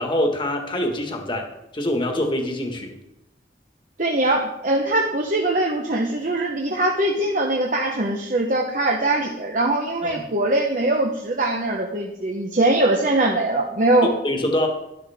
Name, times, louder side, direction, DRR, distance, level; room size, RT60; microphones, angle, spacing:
voice 1, 0.0-1.5 1.7-2.9 10.0-10.2 14.2-14.7, left 1 dB, 30° left, 3 dB, 1.6 m, -24 dB
voice 2, 4.0-14.1, right 1 dB, 45° right, 0 dB, 1.0 m, -22 dB
12.0 x 11.5 x 3.6 m, 0.92 s
head